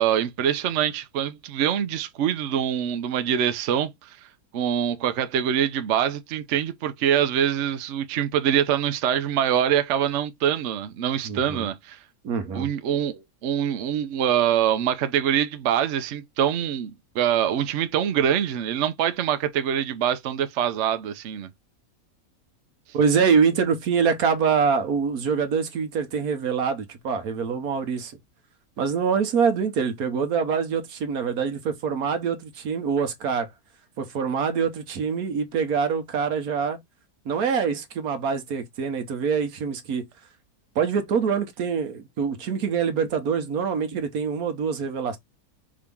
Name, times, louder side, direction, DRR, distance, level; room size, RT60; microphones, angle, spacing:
voice 1, 0.0-4.3 4.5-12.0 12.5-21.5, right 9 dB, 60° right, 0.9 m, -24 dB
voice 2, 11.2-11.7 12.2-12.7 22.9-28.1 28.8-33.5 34.0-36.8 37.2-40.0 40.7-45.2, right 6 dB, 80° right, 1.4 m, -25 dB
5.0 x 2.8 x 3.5 m
omnidirectional pair, 1.5 m